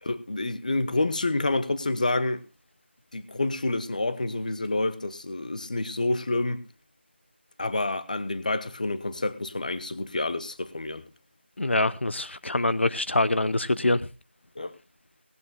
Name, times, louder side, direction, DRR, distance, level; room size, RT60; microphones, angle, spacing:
voice 1, 0.0-2.4 3.1-6.6 7.6-11.0 14.6-14.7, left 2 dB, 40° left, 1.0 m, -28 dB
voice 2, 11.6-14.0, left 2 dB, 70° left, 0.8 m, -24 dB
18.5 x 17.5 x 2.2 m
figure-of-eight pair, 175°, 7 cm